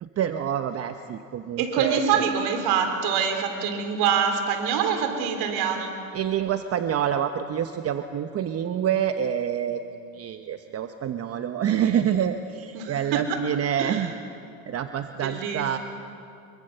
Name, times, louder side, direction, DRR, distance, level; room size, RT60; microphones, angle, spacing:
voice 1, 0.0-2.2 6.1-14.1 14.7-15.8, right 9 dB, 35° right, 8 dB, 1.0 m, -27 dB
voice 2, 1.6-5.9 12.7-13.4 13.8-14.1 15.1-15.8, right 7 dB, 65° right, 6 dB, 3.6 m, -25 dB
26.0 x 23.0 x 6.8 m, 2.8 s
supercardioid pair, 100°, 40 cm